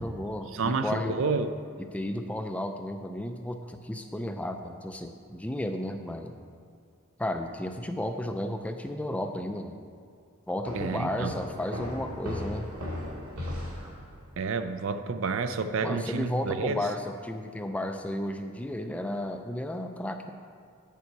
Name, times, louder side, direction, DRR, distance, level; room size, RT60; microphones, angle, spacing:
voice 1, 0.0-1.2 1.8-6.4 7.2-9.8 10.5-12.7 15.8-20.3, left 1 dB, 5° left, 6 dB, 0.3 m, -33 dB
voice 2, 0.5-1.5 10.7-11.3 14.4-16.9, right 4 dB, 60° right, 10 dB, 0.4 m, -29 dB
sound 1, 10.6-14.3, left 1 dB, 90° right, 2.0 m, -37 dB
9.1 x 6.7 x 4.6 m, 2.2 s
head